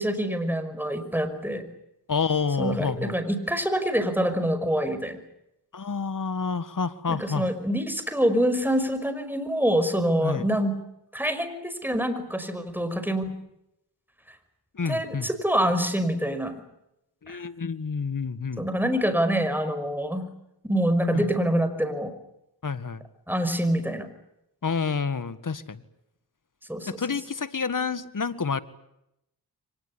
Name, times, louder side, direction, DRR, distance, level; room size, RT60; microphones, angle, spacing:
voice 1, 0.0-1.7 2.6-5.2 7.1-10.7 11.1-13.3 14.9-16.5 17.3-17.4 18.6-20.3 20.6-22.1 23.3-24.1 26.7-27.0, equal, 5° right, 10 dB, 5.6 m, -26 dB
voice 2, 2.1-3.1 5.7-7.5 10.2-10.5 14.7-15.3 17.2-18.6 21.1-21.3 22.6-23.0 24.6-25.8 26.9-28.6, left 5 dB, 45° left, 15 dB, 1.8 m, -28 dB
24.5 x 20.0 x 9.9 m, 0.83 s
cardioid pair, 45°, 42 cm